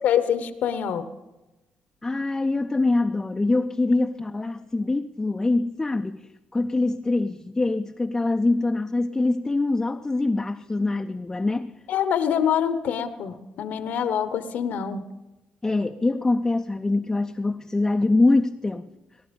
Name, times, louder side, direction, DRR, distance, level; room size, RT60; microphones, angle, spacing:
voice 1, 0.0-1.1 11.9-15.0, left 8 dB, 75° left, 1.0 m, -25 dB
voice 2, 2.0-11.7 15.6-19.0, left 2 dB, 15° left, 0.5 m, -24 dB
19.0 x 11.0 x 5.3 m
cardioid pair, 105°, 3 cm